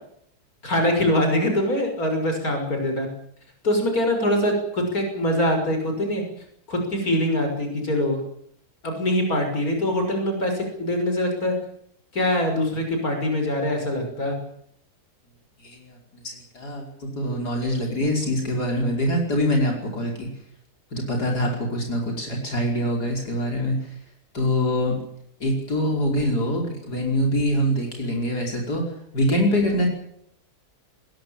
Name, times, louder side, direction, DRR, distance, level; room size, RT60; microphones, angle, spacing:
voice 1, 0.6-3.1 3.6-6.2 6.7-8.2 8.8-11.5 12.1-14.4, left 1 dB, 65° left, 4 dB, 6.6 m, -23 dB
voice 2, 15.6-16.8 17.2-20.3 20.9-24.0 24.3-25.0 25.4-29.9, equal, 85° left, 0 dB, 5.9 m, -24 dB
21.5 x 20.5 x 9.0 m, 0.71 s
omnidirectional pair, 1.7 m